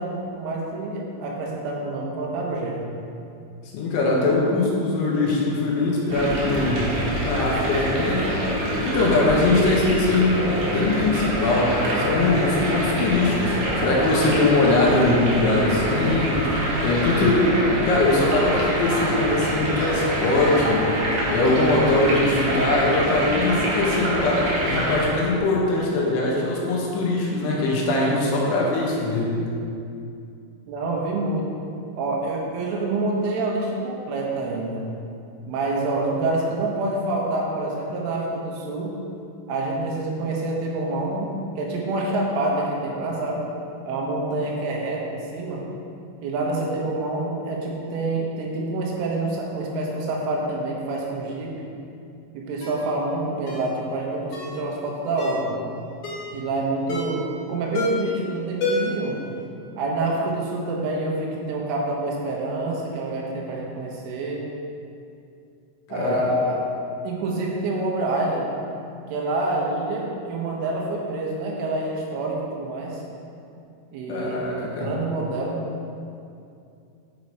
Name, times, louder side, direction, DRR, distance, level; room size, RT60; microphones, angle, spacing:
voice 1, 0.0-2.9 12.2-12.5 30.7-31.5 32.0-34.9 35.5-39.0 39.5-43.4 43.9-45.6 46.2-51.5 52.3-55.6 56.3-59.2 59.8-64.4 65.9-66.7 67.0-68.5 69.1-73.0 73.9-75.6, right 2 dB, 85° right, -2 dB, 3.7 m, -27 dB
voice 2, 3.7-6.9 7.2-8.3 8.8-16.5 16.8-17.5 17.9-20.9 21.3-29.5 65.9-66.2 74.1-74.9, left 2 dB, 80° left, -4 dB, 3.6 m, -22 dB
sound 1, 6.1-25.1, equal, 55° right, 2.3 m, -25 dB
Ringtone, 52.6-52.8 53.5-53.7 54.3-54.6 55.2-55.5 56.0-56.3 56.9-57.3 57.7-58.1 58.6-59.1 59.4-59.5, left 2 dB, 65° left, 2.0 m, -27 dB
10.0 x 5.7 x 4.7 m, 2.5 s
omnidirectional pair, 5.5 m